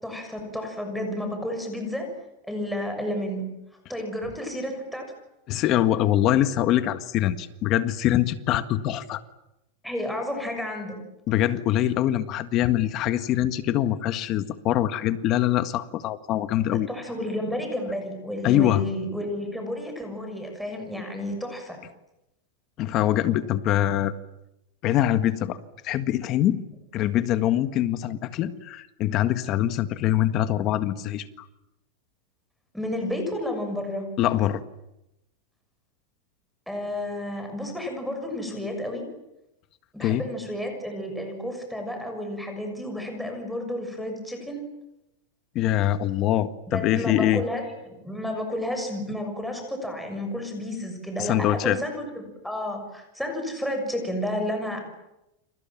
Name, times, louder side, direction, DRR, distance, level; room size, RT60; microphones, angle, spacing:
voice 1, 0.0-2.1 2.5-3.5 3.9-5.1 9.8-11.0 16.9-21.8 32.7-34.1 36.7-39.0 39.9-44.6 46.7-54.8, left 1 dB, ahead, 3 dB, 6.5 m, -31 dB
voice 2, 5.5-9.2 11.3-16.9 18.4-18.8 22.8-24.1 24.8-25.6 25.8-26.6 26.9-31.4 34.2-34.6 40.0-40.2 45.5-47.4 51.2-51.8, left 12 dB, 35° left, 11 dB, 1.7 m, -23 dB
30.0 x 27.0 x 7.4 m, 0.89 s
supercardioid pair, 155°, 0 cm